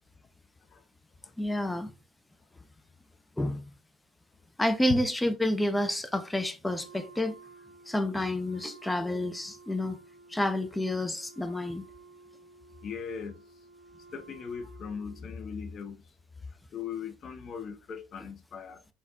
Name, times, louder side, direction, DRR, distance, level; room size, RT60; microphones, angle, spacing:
voice 1, 1.4-1.9 3.4-3.6 4.6-7.3 7.9-10.0 10.3-11.8, left 1 dB, 10° left, 0.8 m, -29 dB
Wind instrument woodwind instrument, 6.6-15.5, right 4 dB, 65° right, 1.9 m, -53 dB
voice 2, 12.8-13.4 14.1-16.1 16.7-18.8, left 6 dB, 40° left, 0.7 m, -38 dB
4.0 x 3.9 x 2.7 m
figure-of-eight pair, 65°, 0 cm